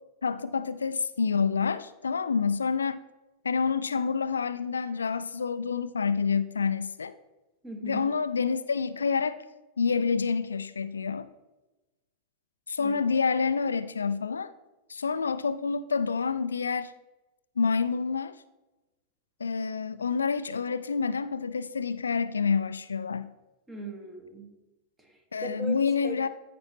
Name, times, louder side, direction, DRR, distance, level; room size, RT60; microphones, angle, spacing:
voice 1, 0.2-3.0 3.4-7.1 7.8-9.4 9.8-11.3 12.7-14.5 14.9-16.9 17.6-18.3 19.4-23.3 25.3-26.3, left 5 dB, 75° left, 0.3 m, -28 dB
voice 2, 7.6-8.1 12.8-13.0 23.7-24.5 25.0-26.3, right 2 dB, 15° right, 1.4 m, -39 dB
13.5 x 5.1 x 3.0 m
figure-of-eight pair, 90°, 0 cm